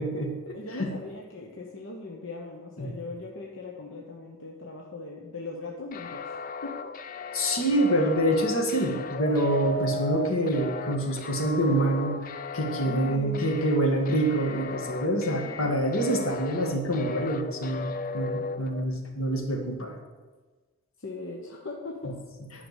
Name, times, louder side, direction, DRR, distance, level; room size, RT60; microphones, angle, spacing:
voice 1, 0.0-0.9 2.8-2.9 7.3-19.9, right 1 dB, 80° left, 2 dB, 1.9 m, -26 dB
voice 2, 0.5-6.3 6.6-6.8 12.8-13.5 15.1-15.7 21.0-22.2, left 2 dB, 65° left, -1 dB, 1.1 m, -39 dB
sound 1, 5.9-18.8, left 3 dB, 40° left, 0.4 m, -36 dB
10.5 x 5.9 x 8.2 m, 1.3 s
head